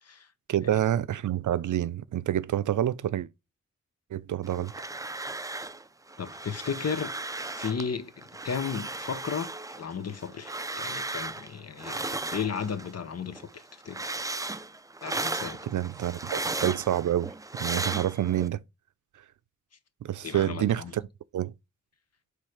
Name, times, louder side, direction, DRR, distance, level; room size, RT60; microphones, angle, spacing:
voice 1, 0.5-3.3 4.1-4.7 15.6-17.3 17.6-18.6 20.0-21.0 21.3-21.5, right 11 dB, 85° right, 0.5 m, -27 dB
sound 1, 4.4-5.8 6.1-7.9 8.2-13.0 13.3-18.5, right 2 dB, 10° right, 0.4 m, -36 dB
voice 2, 6.2-7.1 7.6-14.0 15.0-15.6 20.2-20.9, left 6 dB, 60° left, 0.8 m, -34 dB
6.3 x 3.3 x 4.9 m
wide cardioid pair, 115°, 29 cm